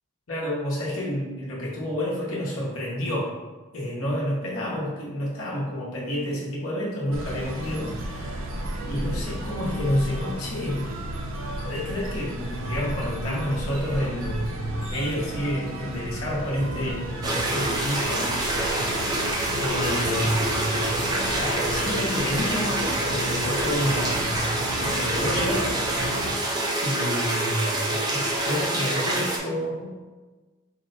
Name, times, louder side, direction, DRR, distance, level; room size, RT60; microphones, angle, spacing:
voice 1, 0.3-3.3 3.7-8.4 8.8-11.0 11.6-18.8 19.6-22.8 23.1-24.5 24.8-25.7 26.8-29.9, equal, 75° left, -6 dB, 0.9 m, -29 dB
sound 1, 7.1-26.3, right 1 dB, 65° right, 0.6 m, -33 dB
sound 2, 17.2-29.4, right 1 dB, 20° right, 0.4 m, -26 dB
4.4 x 2.1 x 4.0 m, 1.3 s
head